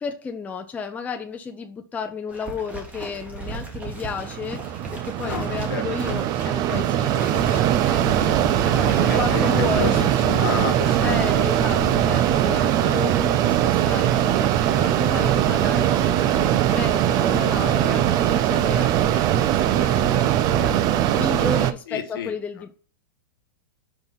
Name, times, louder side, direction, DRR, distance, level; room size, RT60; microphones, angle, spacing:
voice 1, 0.0-7.7 8.6-10.1 11.0-20.7 21.1-22.7, left 5 dB, 10° left, 0.7 m, -33 dB
sound 1, 2.3-20.8, right 2 dB, 10° right, 1.6 m, -33 dB
Mechanisms, 3.7-21.7, right 12 dB, 35° right, 0.5 m, -21 dB
voice 2, 5.2-5.8 8.9-9.9 10.2-11.0 11.3-11.5 21.9-22.3, left 9 dB, 75° left, 1.5 m, -30 dB
5.7 x 5.5 x 4.0 m
supercardioid pair, 145°, 12 cm